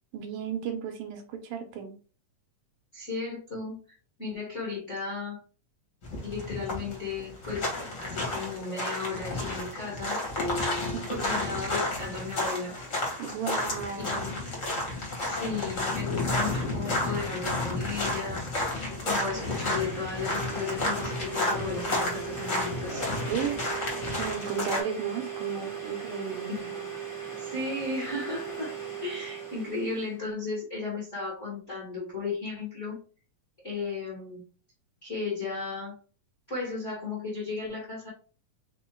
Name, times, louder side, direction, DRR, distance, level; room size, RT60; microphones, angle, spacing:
voice 1, 0.1-1.9 10.9-11.3 13.2-14.3 23.3-23.6 24.1-26.5, right 7 dB, 75° right, 5 dB, 2.2 m, -34 dB
voice 2, 2.9-3.8 4.2-5.4 6.2-7.7 8.0-10.2 11.1-12.7 14.0-14.3 15.2-18.4 19.0-23.1 26.5-26.9 27.4-28.7 29.0-33.0 33.6-34.4 35.0-35.9 36.5-38.1, left 4 dB, 35° left, -6 dB, 1.1 m, -35 dB
sound 1, 6.0-24.8, left 2 dB, 85° left, 0.7 m, -31 dB
sound 2, 10.4-14.4, left 2 dB, 65° left, 1.9 m, -41 dB
Domestic sounds home sounds, 19.1-30.2, right 7 dB, 5° left, 0.3 m, -38 dB
5.4 x 2.1 x 4.4 m, 0.38 s
omnidirectional pair, 3.9 m